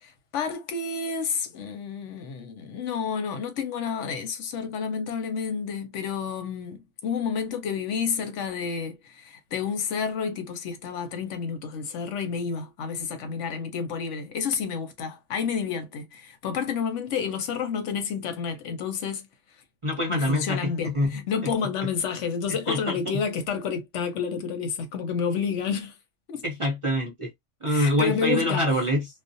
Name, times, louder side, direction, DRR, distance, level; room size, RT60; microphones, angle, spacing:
voice 1, 0.0-19.3 20.1-26.0 26.3-26.4 27.7-28.6, left 6 dB, 80° left, 1.0 m, -30 dB
voice 2, 19.8-21.5 22.5-23.2 26.4-27.3 27.6-29.1, left 1 dB, 40° right, 0.5 m, -26 dB
2.4 x 2.1 x 2.6 m
omnidirectional pair, 1.2 m